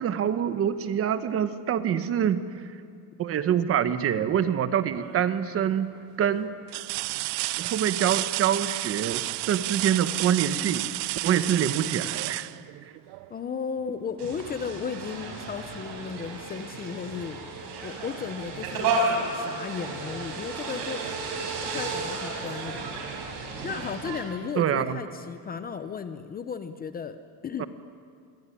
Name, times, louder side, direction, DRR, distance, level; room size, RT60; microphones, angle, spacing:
voice 1, 0.0-2.7 3.2-5.9 6.2-6.5 7.6-10.9 11.2-12.5 24.6-25.0 27.6-27.7, right 9 dB, 30° right, 11 dB, 1.1 m, -25 dB
sound 1, 4.9-5.4 6.0-6.1 6.7-13.4 15.1-15.3 15.7-16.8 18.1-18.2, right 23 dB, 70° right, 0.6 m, -32 dB
voice 2, 13.3-17.4 17.8-19.1 19.3-21.0 21.6-23.0 23.6-27.2 27.4-27.7, left 6 dB, 20° left, 10 dB, 0.7 m, -35 dB
sound 2, 14.2-24.2, right 3 dB, 55° right, 6.8 m, -32 dB
26.5 x 22.5 x 9.9 m, 2.3 s
cardioid pair, 175°, 43 cm